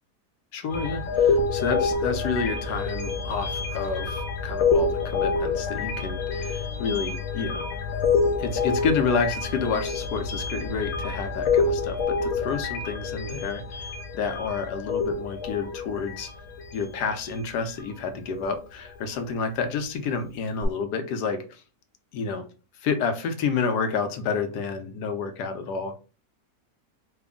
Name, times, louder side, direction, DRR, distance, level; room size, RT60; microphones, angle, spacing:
voice 1, 0.5-7.6 8.4-16.3 16.7-21.6 22.1-22.4 22.8-26.0, left 5 dB, 85° left, 7 dB, 1.2 m, -29 dB
sound 1, 0.7-17.9 18.3-18.6 20.6-20.7, left 4 dB, 60° left, 1.0 m, -27 dB
3.4 x 2.2 x 3.5 m, 0.34 s
omnidirectional pair, 1.7 m